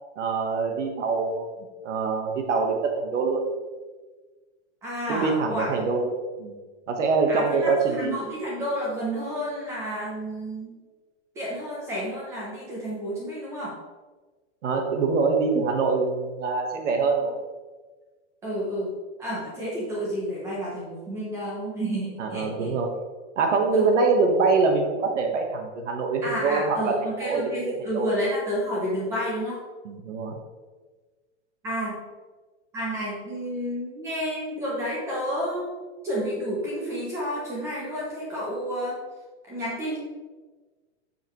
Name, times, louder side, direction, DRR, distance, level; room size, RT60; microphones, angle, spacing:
voice 1, 0.2-1.5 1.8-3.4 5.1-6.1 6.4-6.6 6.9-8.1 14.6-17.4 22.2-22.9 23.4-26.9 27.2-28.1 29.8-30.4, right 4 dB, 85° right, 3 dB, 1.2 m, -24 dB
voice 2, 4.8-5.8 7.3-10.7 11.3-13.7 18.4-18.9 19.2-22.7 23.7-23.9 26.2-29.6 31.6-32.0 32.7-39.0 39.5-40.0, equal, 10° right, -5 dB, 0.5 m, -30 dB
7.6 x 5.8 x 3.0 m, 1.3 s
supercardioid pair, 175°, 35 cm